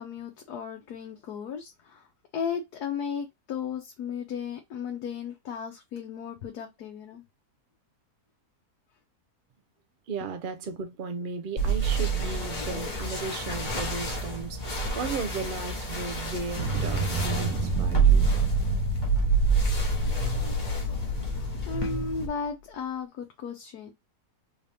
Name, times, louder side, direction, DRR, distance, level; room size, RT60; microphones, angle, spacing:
voice 1, 0.0-2.0 2.3-7.2 21.4-23.9, left 6 dB, 80° left, 1.3 m, -35 dB
voice 2, 10.1-18.2, right 4 dB, 55° right, 0.5 m, -35 dB
sound 1, 11.6-22.3, right 5 dB, 35° left, 1.0 m, -28 dB
sound 2, 16.6-22.3, left 1 dB, 85° right, 1.7 m, -29 dB
3.8 x 2.6 x 3.4 m
omnidirectional pair, 1.7 m